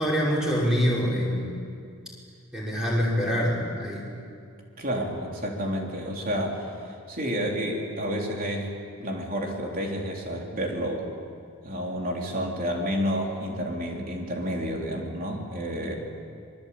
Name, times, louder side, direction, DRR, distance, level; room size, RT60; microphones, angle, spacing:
voice 1, 0.0-1.5 2.5-4.1, equal, 5° right, -5 dB, 5.7 m, -25 dB
voice 2, 4.8-8.7 9.0-11.0 11.6-16.0, equal, 40° right, 0 dB, 3.7 m, -30 dB
26.5 x 22.5 x 8.7 m, 2.3 s
head